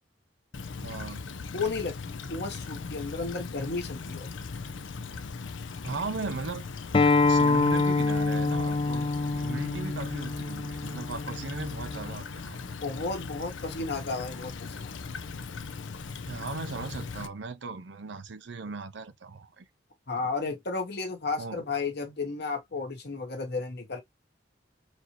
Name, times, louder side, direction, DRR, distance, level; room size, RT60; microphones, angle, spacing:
Stream / Trickle dribble, 0.5-17.3, left 4 dB, 75° left, 0.6 m, -39 dB
voice 1, 0.8-1.2 5.8-6.6 7.3-9.1 9.3-12.6 16.3-19.6 20.2-20.3 21.4-21.6, right 4 dB, 65° right, 0.6 m, -37 dB
voice 2, 1.5-1.9 2.3-4.3 12.8-14.9 20.1-24.0, left 3 dB, 55° left, 1.2 m, -33 dB
Acoustic guitar, 6.9-12.1, left 3 dB, 25° left, 0.4 m, -26 dB
4.3 x 2.8 x 2.9 m
head